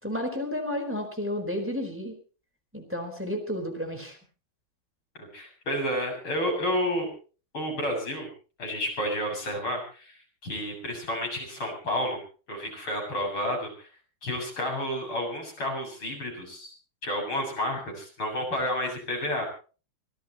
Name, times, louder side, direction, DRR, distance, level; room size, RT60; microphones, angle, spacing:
voice 1, 0.0-2.2 2.7-4.2, left 1 dB, 5° right, 4 dB, 4.3 m, -32 dB
voice 2, 5.2-7.1 7.5-8.3 8.6-12.2 12.5-13.9 14.2-16.7 17.0-19.5, equal, 90° left, 1 dB, 8.4 m, -30 dB
25.5 x 17.5 x 3.1 m, 0.37 s
omnidirectional pair, 2.2 m